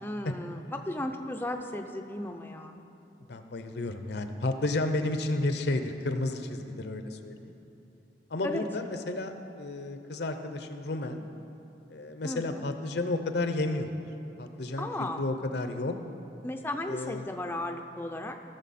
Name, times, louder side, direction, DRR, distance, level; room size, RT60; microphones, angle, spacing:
voice 1, 0.0-2.8 8.4-8.7 12.2-12.7 14.8-15.2 16.4-18.4, left 1 dB, 10° left, 4 dB, 0.5 m, -35 dB
voice 2, 3.3-7.5 8.3-11.2 11.9-14.0 14.4-15.9 16.9-17.3, left 2 dB, 70° left, 7 dB, 0.7 m, -32 dB
16.5 x 6.8 x 4.2 m, 3.0 s
head